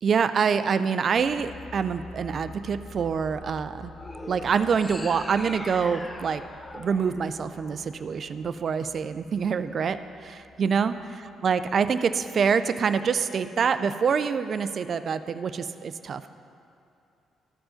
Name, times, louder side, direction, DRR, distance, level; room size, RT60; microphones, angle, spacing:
voice 1, 0.0-3.9 4.3-6.4 6.7-10.9 11.4-16.3, right 6 dB, 50° right, 12 dB, 0.3 m, -26 dB
sound 1, 1.2-12.5 12.8-12.9, left 3 dB, 80° left, 0.6 m, -48 dB
sound 2, 3.9-8.3, left 1 dB, 20° left, 0.5 m, -41 dB
13.5 x 4.8 x 3.8 m, 2.6 s
cardioid pair, 90°, 0 cm